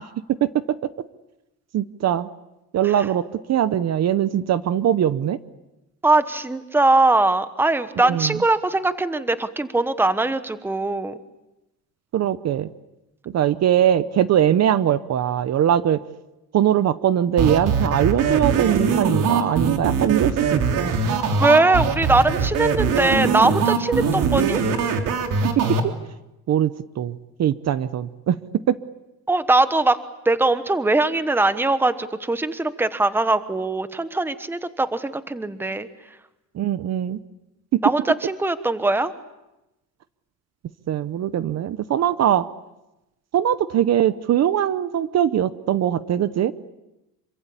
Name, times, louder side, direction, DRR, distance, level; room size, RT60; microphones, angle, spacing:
voice 1, 1.7-2.3 2.7-3.2 3.5-5.4 8.0-8.4 12.1-12.7 13.3-16.0 16.5-21.0 25.6-25.9 26.5-28.4 28.7-28.8 36.5-37.2 40.9-42.5 43.3-46.5, right 10 dB, 45° right, 14 dB, 0.9 m, -21 dB
voice 2, 6.0-11.2 21.4-24.6 29.3-30.0 30.2-35.9 37.8-39.1, right 2 dB, 5° right, 12 dB, 1.1 m, -21 dB
sound 1, 17.4-25.8, right 5 dB, 60° right, 3.5 m, -21 dB
27.0 x 24.5 x 8.5 m, 0.97 s
cardioid pair, 160°, 36 cm